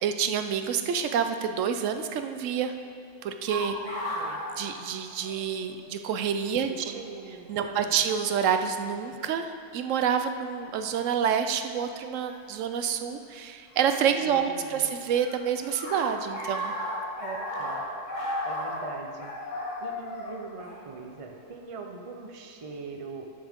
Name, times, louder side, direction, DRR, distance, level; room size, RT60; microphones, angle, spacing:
voice 1, 0.0-2.7 3.2-3.8 4.6-6.7 7.5-16.7, right 7 dB, 80° right, 8 dB, 0.9 m, -28 dB
sound 1, 3.5-5.6 5.8-5.9 6.9-7.2 8.2-8.4 9.2-9.6 12.3-12.4 13.7-14.6 14.9-21.4, equal, 70° left, 2.2 m, -35 dB
voice 2, 3.8-4.4 6.6-8.0 14.2-14.9 17.2-17.8 18.4-19.3 19.8-23.3, right 4 dB, 30° right, 3 dB, 0.7 m, -42 dB
12.0 x 7.3 x 3.6 m, 2.7 s
omnidirectional pair, 1.3 m